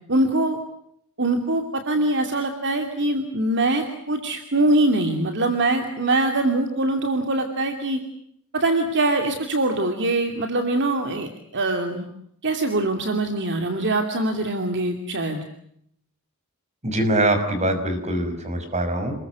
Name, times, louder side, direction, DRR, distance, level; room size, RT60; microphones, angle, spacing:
voice 1, 0.1-0.6 1.2-8.0 8.5-12.1 12.4-15.4, right 2 dB, 55° right, 5 dB, 2.7 m, -23 dB
voice 2, 16.8-19.1, right 1 dB, 30° right, 7 dB, 5.9 m, -23 dB
29.0 x 21.5 x 8.2 m, 0.71 s
head